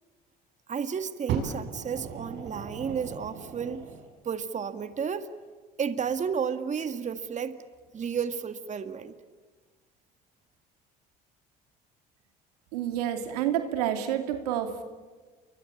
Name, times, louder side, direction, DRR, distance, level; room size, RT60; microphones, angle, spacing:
voice 1, 0.7-3.9 4.2-5.3 5.8-7.6 7.9-9.1, right 6 dB, 40° right, 9 dB, 1.8 m, -32 dB
Fire, 1.3-4.1 4.9-5.0, right 7 dB, 65° right, 6.9 m, -36 dB
voice 2, 12.7-14.8, right 10 dB, 90° right, 7 dB, 2.5 m, -29 dB
29.0 x 23.5 x 8.7 m, 1.4 s
supercardioid pair, 75°, 20 cm